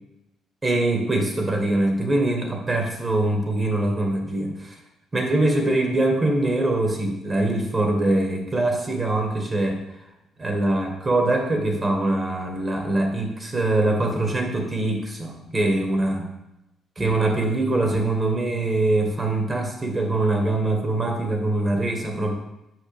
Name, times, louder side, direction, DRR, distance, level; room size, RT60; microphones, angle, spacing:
voice 1, 0.6-4.8 5.1-9.8 10.4-16.3 17.0-22.3, right 2 dB, 30° right, 2 dB, 1.5 m, -23 dB
6.5 x 5.1 x 3.4 m, 0.91 s
supercardioid pair, 75°, 0 cm